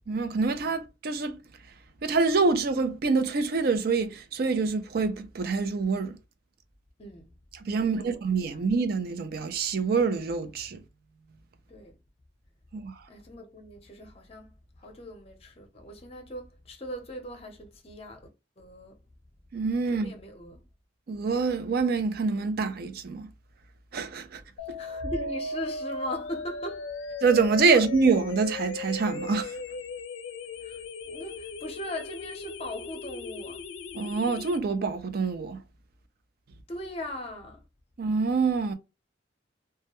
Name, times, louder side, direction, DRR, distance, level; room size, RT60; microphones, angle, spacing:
voice 1, 0.1-1.4 2.0-6.2 7.6-10.8 12.7-12.9 19.5-20.1 21.1-23.3 23.9-24.4 27.2-29.6 33.9-35.6 38.0-38.7, right 4 dB, 55° right, 0.4 m, -26 dB
voice 2, 7.0-7.4 7.8-8.2 8.5-8.7 11.7-12.0 13.1-18.3 18.6-19.0 19.9-20.7 24.6-26.9 27.7-27.9 30.6-33.7 36.7-37.6, left 1 dB, 35° left, 0.6 m, -39 dB
sound 1, 24.6-34.6, left 3 dB, 85° left, 0.4 m, -37 dB
2.2 x 2.2 x 2.9 m
head